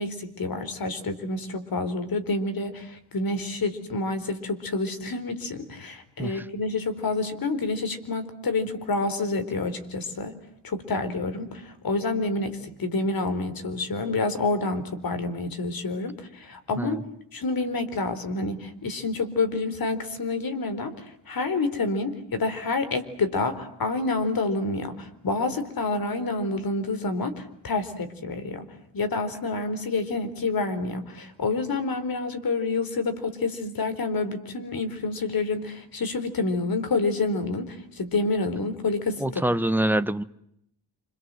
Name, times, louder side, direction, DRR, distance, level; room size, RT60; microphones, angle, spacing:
voice 1, 0.0-10.4 10.6-17.0 17.3-28.6 28.9-39.4, left 3 dB, 55° left, 9 dB, 4.3 m, -28 dB
voice 2, 39.2-40.2, right 1 dB, 5° right, 12 dB, 1.1 m, -25 dB
28.5 x 26.5 x 7.8 m, 0.76 s
cardioid pair, 95°, 41 cm